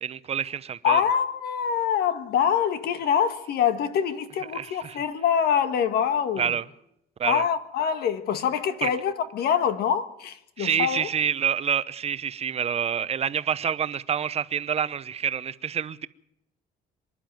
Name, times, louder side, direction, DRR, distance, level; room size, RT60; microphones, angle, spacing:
voice 1, 0.0-1.1 4.5-5.0 6.4-6.6 7.2-7.4 8.8-8.9 10.6-16.1, right 8 dB, 40° right, 0.9 m, -27 dB
voice 2, 0.8-6.5 7.2-11.1, left 8 dB, 70° left, 1.8 m, -25 dB
25.0 x 11.5 x 9.3 m
cardioid pair, 110°, 17 cm